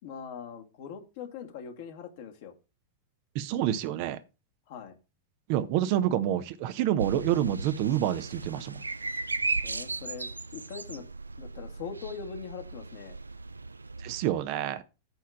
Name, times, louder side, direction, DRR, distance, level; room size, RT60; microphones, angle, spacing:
voice 1, 0.0-2.5 4.7-5.0 9.6-11.1 11.4-13.2, left 6 dB, 50° left, 1.8 m, -42 dB
voice 2, 3.3-4.2 5.5-8.8 14.0-14.8, right 11 dB, 45° right, 0.9 m, -28 dB
sound 1, 7.0-14.3, right 3 dB, 80° right, 0.4 m, -36 dB
9.1 x 3.6 x 7.0 m
figure-of-eight pair, 90°, 0 cm